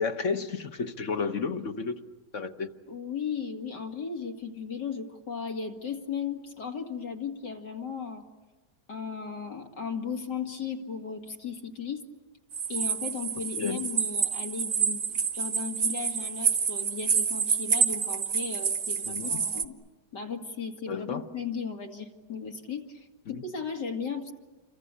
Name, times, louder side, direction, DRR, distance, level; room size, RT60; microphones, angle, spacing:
voice 1, 0.0-2.0 2.3-2.7 13.6-13.9 19.1-19.5 20.9-21.3 23.3-23.4, left 5 dB, 50° left, 1.3 m, -32 dB
voice 2, 2.9-8.2 8.9-12.0 12.7-19.8 20.1-24.3, left 6 dB, 80° left, 2.9 m, -36 dB
sound 1, 12.5-19.6, right 6 dB, 50° right, 1.6 m, -28 dB
29.0 x 24.5 x 8.2 m
omnidirectional pair, 1.8 m